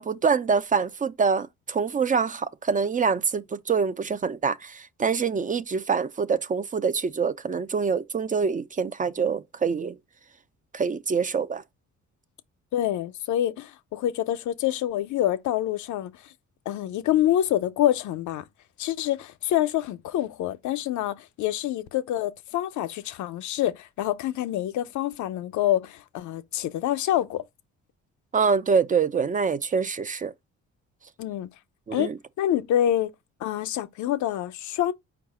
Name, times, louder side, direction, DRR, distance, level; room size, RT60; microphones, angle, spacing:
voice 1, 0.0-9.9 10.7-11.6 28.3-30.3 31.9-32.1, right 5 dB, 30° right, 0.4 m, -25 dB
voice 2, 12.7-16.3 16.7-18.5 18.8-27.4 31.2-31.5 31.9-32.1 32.4-33.1 33.4-34.9, left 12 dB, 75° left, 0.6 m, -26 dB
4.7 x 2.4 x 4.7 m
cardioid pair, 90°, 30 cm